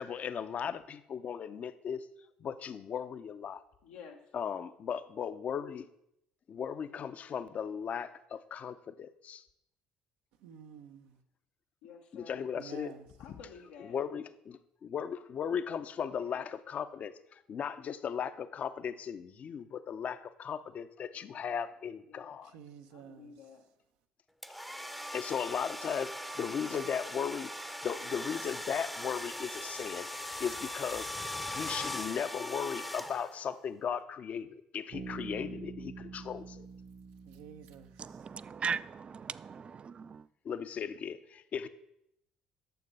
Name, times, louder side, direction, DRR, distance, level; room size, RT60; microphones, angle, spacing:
voice 1, 0.0-2.1 2.4-3.6 4.3-5.9 6.5-9.4 12.1-12.9 13.8-22.5 25.1-27.5 27.8-30.1 30.4-31.1 31.5-36.7 40.4-41.7, left 7 dB, 50° left, 0.6 m, -37 dB
voice 2, 3.8-4.3 11.8-12.5 13.2-14.0 16.1-16.4 21.1-21.6 22.1-22.3 22.9-23.6, left 6 dB, 90° left, 1.0 m, -52 dB
voice 3, 10.4-11.2 12.5-13.1 22.4-23.3 37.2-38.3, right 8 dB, 80° right, 0.9 m, -51 dB
sound 1, 24.4-33.6, left 1 dB, ahead, 0.7 m, -40 dB
Bass guitar, 34.9-38.6, right 4 dB, 50° right, 1.1 m, -46 dB
voice 4, 38.0-40.2, right 6 dB, 35° right, 0.4 m, -38 dB
9.4 x 6.8 x 5.4 m
supercardioid pair, 70°, 3 cm